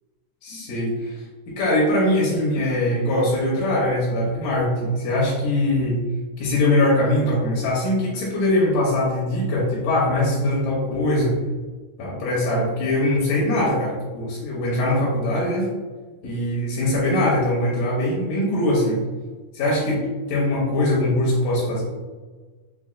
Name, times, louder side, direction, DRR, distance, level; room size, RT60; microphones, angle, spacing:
voice 1, 0.4-1.2 1.5-6.0 6.4-11.3 12.0-15.7 16.2-19.0 19.5-20.0 20.3-21.8, left 1 dB, 85° left, -5 dB, 2.3 m, -22 dB
5.9 x 2.1 x 2.3 m, 1.3 s
omnidirectional pair, 3.6 m